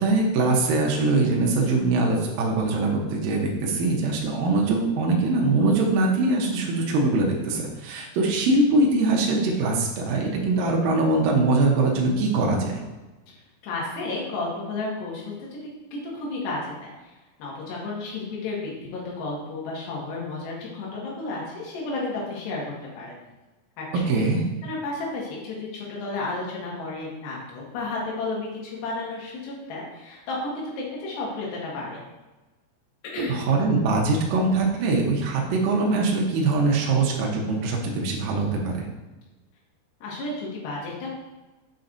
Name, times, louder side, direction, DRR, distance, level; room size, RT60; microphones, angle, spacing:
voice 1, 0.0-12.8 24.1-24.4 33.2-38.9, right 3 dB, 85° right, -1 dB, 2.0 m, -22 dB
voice 2, 13.6-15.6 15.9-17.1 17.4-23.2 23.8-24.1 24.6-32.0 33.1-33.4 40.0-41.1, left 2 dB, 65° left, -4 dB, 3.8 m, -32 dB
7.4 x 5.8 x 3.9 m, 1.1 s
omnidirectional pair, 5.7 m